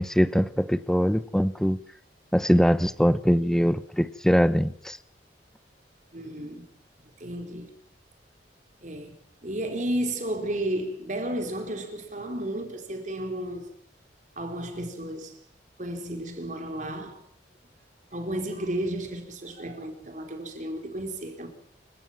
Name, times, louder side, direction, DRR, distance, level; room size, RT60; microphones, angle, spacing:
voice 1, 0.0-1.8 2.3-5.0, equal, 5° left, 0.8 m, -22 dB
voice 2, 6.1-6.6 7.2-7.7 8.8-9.1 9.4-13.7 14.4-15.4 15.8-17.2 18.1-21.5, right 1 dB, 45° right, 4.2 m, -33 dB
29.0 x 16.5 x 5.9 m
head